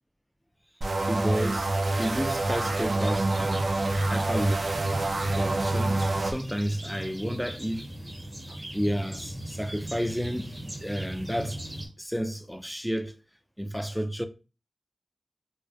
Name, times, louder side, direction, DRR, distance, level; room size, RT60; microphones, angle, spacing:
sound 1, 0.8-6.3, right 2 dB, 75° right, 0.3 m, -27 dB
voice 1, 1.1-3.7 4.1-4.9 5.3-7.9 8.7-11.6 12.0-13.1 13.6-14.2, equal, ahead, 0.3 m, -31 dB
sound 2, 1.8-11.9, right 1 dB, 45° right, 0.7 m, -39 dB
2.2 x 2.1 x 2.6 m
cardioid pair, 45°, 0 cm